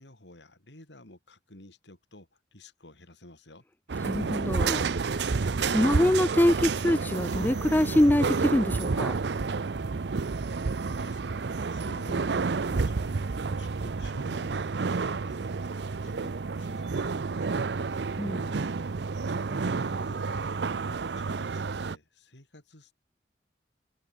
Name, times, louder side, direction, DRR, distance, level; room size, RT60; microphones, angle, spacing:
voice 1, 0.0-3.6 10.9-11.4 11.7-22.9, left 1 dB, 85° left, 4.6 m, -52 dB
sound 1, 3.9-22.0, right 4 dB, 75° right, 0.6 m, -30 dB
voice 2, 4.0-9.2 18.2-18.5, left 1 dB, 10° left, 0.5 m, -25 dB
head